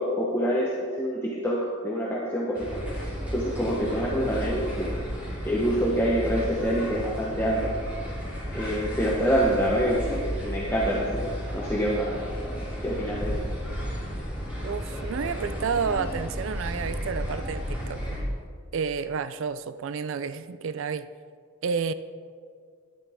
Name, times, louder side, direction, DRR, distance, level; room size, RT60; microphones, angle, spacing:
voice 1, 0.0-2.8 3.3-5.0 5.4-7.7 8.5-12.2 12.8-13.3, equal, 10° left, -5 dB, 1.0 m, -26 dB
sound 1, 2.5-18.2, equal, 5° right, 3.3 m, -33 dB
voice 2, 14.6-18.0 18.7-21.1 21.6-21.9, right 5 dB, 60° right, 14 dB, 0.4 m, -30 dB
12.0 x 11.0 x 3.6 m, 2.1 s
head